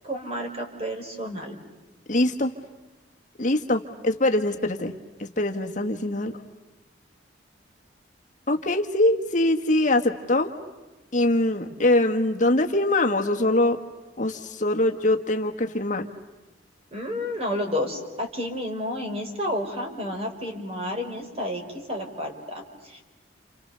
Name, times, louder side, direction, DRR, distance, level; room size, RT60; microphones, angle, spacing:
voice 1, 0.0-1.5 16.9-21.6 21.9-23.0, left 1 dB, 30° right, 3 dB, 4.2 m, -31 dB
voice 2, 2.1-2.5 3.4-4.9 5.2-6.4 8.5-10.5 11.1-13.8 14.2-16.1, left 1 dB, 40° left, 4 dB, 1.4 m, -23 dB
29.5 x 29.0 x 6.7 m, 1.1 s
head